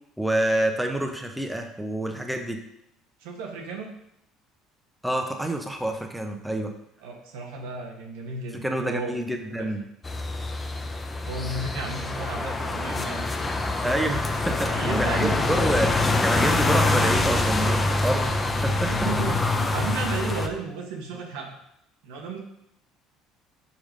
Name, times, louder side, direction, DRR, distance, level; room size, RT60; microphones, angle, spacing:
voice 1, 0.2-2.6 5.0-6.7 8.6-9.8 13.8-15.9 16.2-18.3 18.6-18.9, right 1 dB, 5° right, 3 dB, 1.0 m, -27 dB
voice 2, 3.2-3.9 7.0-9.2 9.6-9.7 11.2-13.5 14.7-15.8 19.0-21.6 22.0-22.4, right 4 dB, 80° right, 1 dB, 1.4 m, -33 dB
sound 1, 10.0-20.5, left 2 dB, 25° left, 0.8 m, -25 dB
5.8 x 4.8 x 5.2 m, 0.77 s
supercardioid pair, 80°, 0 cm